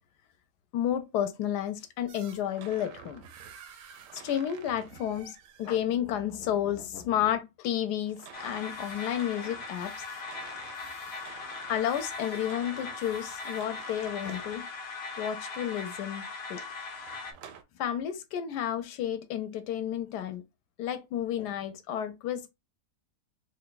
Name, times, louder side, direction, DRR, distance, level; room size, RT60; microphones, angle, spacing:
voice 1, 0.7-3.2 4.1-9.9 11.7-14.7 15.2-16.6 17.8-20.4 20.8-22.5, left 10 dB, 75° left, 1.1 m, -31 dB
sound 1, 2.1-5.8 8.0-14.6 17.0-17.6, right 7 dB, 70° right, 0.8 m, -50 dB
sound 2, 8.3-17.3, left 4 dB, 55° left, 0.7 m, -40 dB
3.4 x 2.2 x 3.9 m
omnidirectional pair, 1.8 m